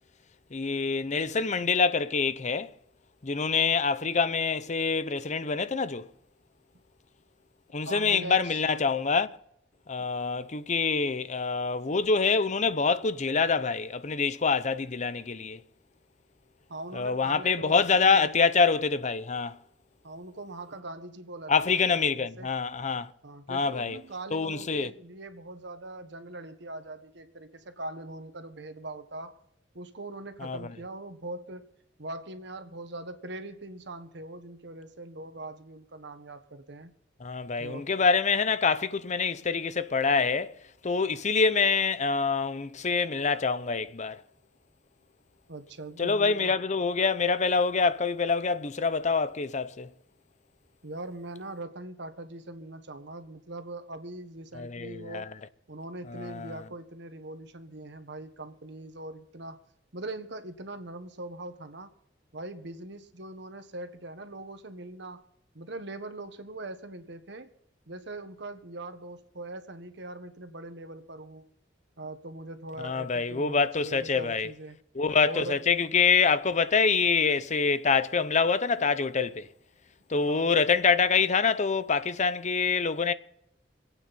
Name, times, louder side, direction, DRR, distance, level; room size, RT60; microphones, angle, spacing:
voice 1, 0.5-2.7 3.2-6.1 7.7-9.4 9.9-15.6 16.9-19.6 21.5-23.1 23.5-24.0 24.3-24.9 30.4-30.7 37.2-40.5 40.8-44.2 46.0-49.9 54.5-55.3 56.1-56.6 72.8-74.5 74.9-79.5 80.1-83.1, left 5 dB, 40° left, 0.7 m, -26 dB
voice 2, 7.8-8.6 10.0-10.1 16.7-18.3 20.0-22.5 23.2-29.4 29.7-31.7 32.0-36.9 37.6-37.9 45.5-46.5 50.8-55.3 55.7-59.6 59.9-61.9 62.3-65.2 65.5-67.5 67.9-71.5 72.0-74.8 75.2-75.6 80.3-80.6, right 2 dB, 65° right, 1.4 m, -41 dB
26.0 x 9.1 x 4.3 m
head